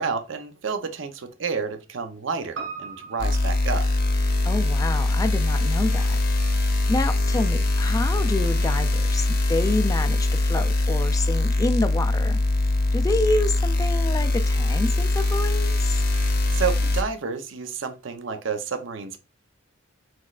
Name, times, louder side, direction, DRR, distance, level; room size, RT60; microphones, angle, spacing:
voice 1, 0.0-3.9 16.5-19.2, right 5 dB, 60° right, 0.6 m, -30 dB
Piano, 2.6-7.1 7.4-7.5, right 5 dB, 85° right, 1.4 m, -42 dB
sound 1, 3.2-17.0, left 2 dB, 45° left, 0.8 m, -22 dB
voice 2, 4.4-6.2 6.9-12.4 12.9-16.0, left 2 dB, 15° left, 0.3 m, -28 dB
6.0 x 3.1 x 2.4 m
head